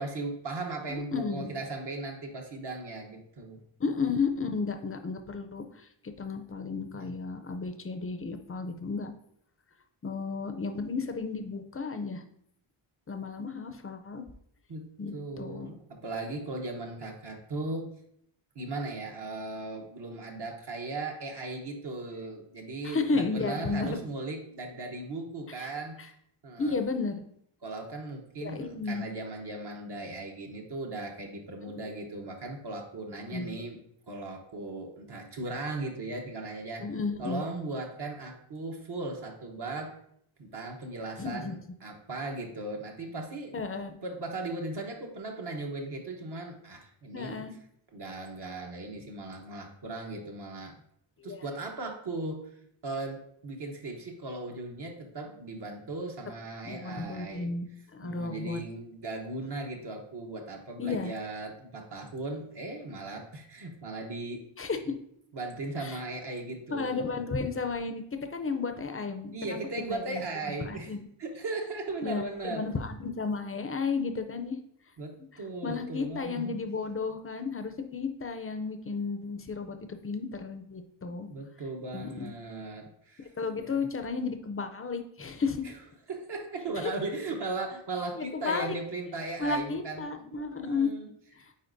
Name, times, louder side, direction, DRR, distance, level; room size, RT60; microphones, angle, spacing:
voice 1, 0.0-3.6 6.9-7.1 14.7-17.9 18.5-26.0 26.4-26.8 27.6-33.8 34.1-36.8 37.2-40.0 40.4-43.5 44.0-47.4 47.9-50.7 51.2-52.5 52.8-57.5 58.0-64.4 64.8-65.0 65.3-67.2 69.3-70.9 71.2-72.6 75.0-76.6 81.1-83.3 83.6-83.9 85.6-85.7 86.1-91.1, right 2 dB, 55° right, 1 dB, 1.0 m, -37 dB
voice 2, 1.1-1.5 3.8-5.9 6.2-9.1 10.0-12.2 13.1-14.2 15.0-15.7 22.8-24.0 25.6-25.7 26.6-27.2 28.4-29.1 31.7-31.9 33.3-33.6 36.8-37.4 41.2-41.6 43.5-44.0 47.1-47.5 51.2-51.4 56.6-57.7 57.9-58.6 60.8-61.1 64.6-64.9 65.8-66.0 66.7-68.0 68.3-69.6 69.9-71.0 72.0-74.6 75.6-81.3 81.9-82.3 83.2-85.6 86.8-86.9 88.2-88.8 89.4-90.9 91.3-91.4, left 4 dB, 30° left, 7 dB, 0.5 m, -33 dB
9.5 x 4.1 x 2.6 m, 0.70 s
wide cardioid pair, 165°, 50 cm